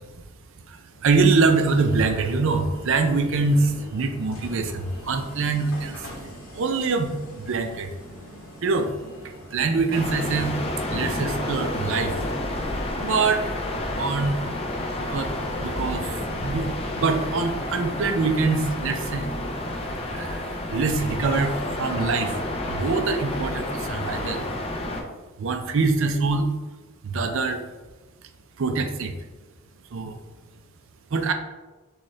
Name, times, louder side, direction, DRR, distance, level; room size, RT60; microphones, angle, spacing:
voice 1, 0.6-7.9 8.6-8.9 9.5-10.6 10.9-12.2 13.0-13.5 14.0-14.4 15.0-15.3 15.6-16.7 17.0-19.3 20.1-22.3 22.7-24.5 25.4-26.5 27.0-27.7 28.6-29.2 29.9-30.2 31.1-31.3, right 4 dB, 65° right, 6 dB, 0.5 m, -24 dB
sound 1, 0.9-13.0, equal, 70° left, 1.1 m, -43 dB
sound 2, 9.9-25.0, left 1 dB, 25° left, 0.5 m, -30 dB
6.3 x 2.4 x 3.2 m, 1.2 s
head